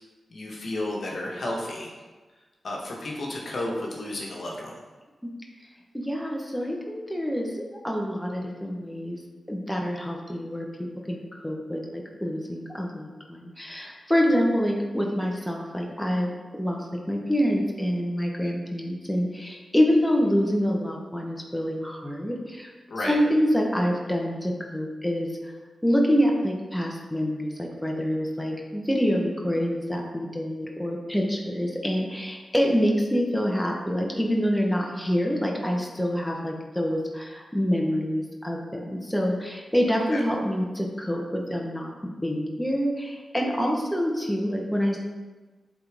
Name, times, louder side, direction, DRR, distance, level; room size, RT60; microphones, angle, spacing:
voice 1, 0.3-1.9 2.6-4.8 22.9-23.1 40.1-40.2, left 1 dB, 70° left, -2 dB, 1.3 m, -32 dB
voice 2, 5.9-9.2 9.5-10.7 11.1-16.3 16.6-22.7 23.1-25.5 25.8-41.9 42.2-45.0, equal, 5° left, 0 dB, 1.3 m, -26 dB
7.8 x 3.9 x 3.6 m, 1.3 s
cardioid pair, 40°, 0 cm